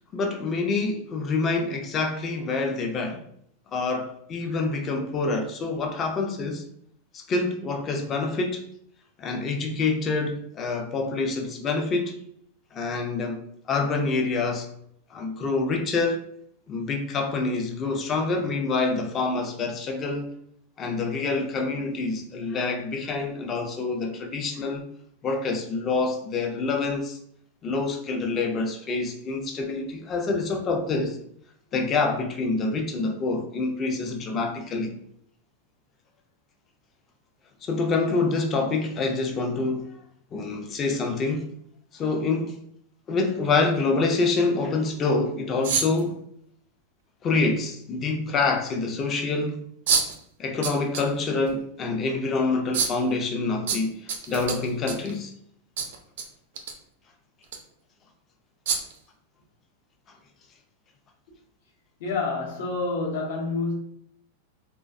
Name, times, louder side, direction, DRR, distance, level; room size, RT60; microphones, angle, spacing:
voice 1, 0.1-3.2 3.7-6.6 7.1-8.6 9.2-12.1 12.7-13.4 13.7-14.7 15.1-16.2 16.7-20.3 20.8-24.8 25.2-27.2 27.6-31.2 31.7-34.9 37.6-39.9 40.3-41.5 41.9-42.5 43.1-46.2 47.2-49.6 50.4-55.3, left 3 dB, 25° left, 4 dB, 0.4 m, -26 dB
sound 1, 45.6-46.0 47.5-47.6 49.9-50.2 50.6-51.1 51.5-51.6 52.7-53.0 53.7-55.1 55.8-56.2 56.5-56.7 57.4-57.6 58.7-59.0, right 6 dB, 70° right, 0.4 m, -26 dB
voice 2, 62.0-63.7, left 3 dB, 70° left, -1 dB, 0.8 m, -28 dB
2.3 x 2.2 x 2.4 m, 0.68 s
supercardioid pair, 155°, 0 cm